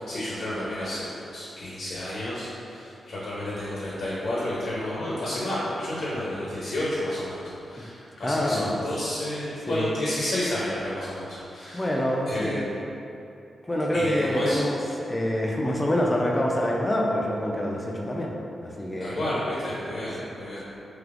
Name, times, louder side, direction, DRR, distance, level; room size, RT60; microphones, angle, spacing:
voice 1, 0.1-11.9 12.3-12.7 13.9-14.6 19.0-20.6, left 1 dB, 75° left, -8 dB, 0.6 m, -31 dB
voice 2, 8.2-8.9 9.7-9.9 11.7-12.7 13.6-18.3 18.6-19.4, left 1 dB, 20° left, -2 dB, 0.4 m, -26 dB
3.3 x 2.8 x 2.5 m, 2.7 s
supercardioid pair, 45°, 0 cm